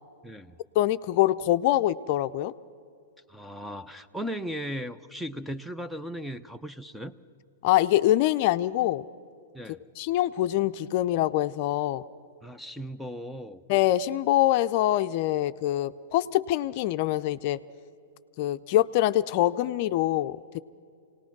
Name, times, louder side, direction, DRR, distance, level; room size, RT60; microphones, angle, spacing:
voice 1, 0.2-0.6 3.3-7.1 9.5-9.8 12.4-13.6, equal, ahead, 12 dB, 0.6 m, -37 dB
voice 2, 0.8-2.5 7.6-9.0 10.0-12.0 13.7-17.6 18.4-20.6, left 14 dB, 45° left, 11 dB, 0.5 m, -24 dB
26.0 x 18.5 x 6.0 m, 2.4 s
hypercardioid pair, 130°, 0 cm